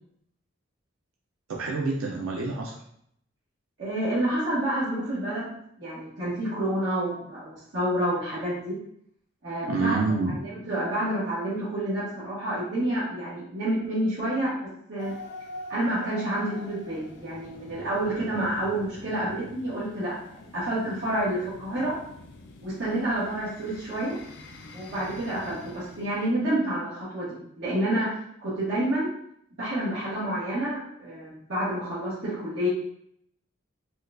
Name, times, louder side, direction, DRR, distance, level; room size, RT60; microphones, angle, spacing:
voice 1, 1.5-2.8 9.7-10.4, right 3 dB, 85° right, -1 dB, 0.5 m, -27 dB
voice 2, 3.8-5.5 5.8-8.8 9.4-10.0 10.4-14.5 14.9-15.1 15.7-20.1 20.5-21.9 22.6-24.2 24.7-28.1 28.4-29.1 29.6-32.7, right 1 dB, 65° right, -12 dB, 1.2 m, -28 dB
sound 1, 15.0-26.3, left 2 dB, 55° left, 0.4 m, -45 dB
4.3 x 2.3 x 2.4 m, 0.71 s
head